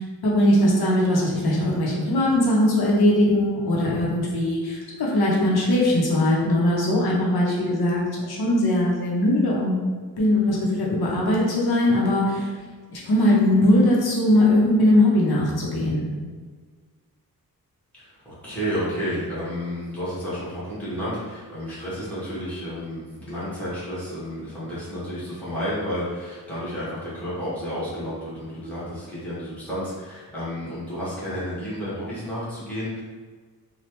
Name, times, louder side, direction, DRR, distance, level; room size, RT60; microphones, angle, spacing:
voice 1, 0.0-9.7 10.2-12.5 12.9-16.1, left 1 dB, 85° left, -4 dB, 0.7 m, -20 dB
voice 2, 17.9-33.0, equal, 5° left, -11 dB, 1.1 m, -31 dB
3.1 x 2.2 x 2.8 m, 1.5 s
wide cardioid pair, 170°, 36 cm